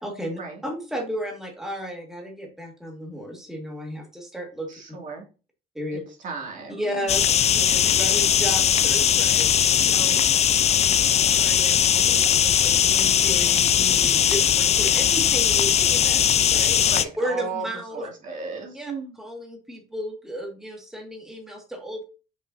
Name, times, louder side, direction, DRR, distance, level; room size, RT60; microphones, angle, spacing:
voice 1, 0.0-4.7 5.8-6.0 6.8-9.5 9.7-10.2 11.2-16.9 17.2-18.0 18.7-18.9 19.2-22.0, equal, 5° right, 0 dB, 1.8 m, -34 dB
voice 2, 4.7-5.2 6.2-7.1 16.8-17.7 17.9-19.1, right 4 dB, 50° right, 1 dB, 2.3 m, -35 dB
sound 1, 7.1-17.0, left 9 dB, 40° left, 0.5 m, -19 dB
6.6 x 5.6 x 2.6 m, 0.34 s
cardioid pair, 110°, 17 cm